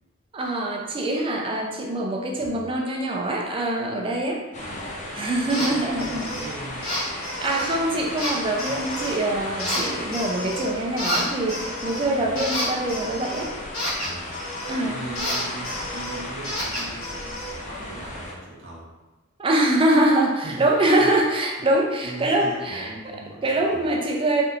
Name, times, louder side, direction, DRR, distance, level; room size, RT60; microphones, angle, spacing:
voice 1, 0.3-4.4 5.2-6.3 6.8-6.9 7.4-13.5 14.7-15.0 19.4-22.9 23.4-24.4, right 1 dB, 25° right, 0 dB, 0.4 m, -24 dB
voice 2, 2.4-2.7 4.6-4.9 5.4-6.9 8.7-8.9 9.4-9.7 12.1-12.5 14.0-14.4 14.8-17.4 17.6-18.9 20.4-20.7 21.0-21.1 22.0-23.9, right 1 dB, 65° right, -5 dB, 0.8 m, -39 dB
sound 1, 4.5-18.3, left 1 dB, 35° left, 0.5 m, -35 dB
sound 2, 5.5-5.7 6.0-6.5 6.8-7.8 8.2-9.2 9.6-10.7 11.0-14.8 15.2-17.5, left 1 dB, 85° left, 1.1 m, -30 dB
3.4 x 2.7 x 2.4 m, 1.2 s
head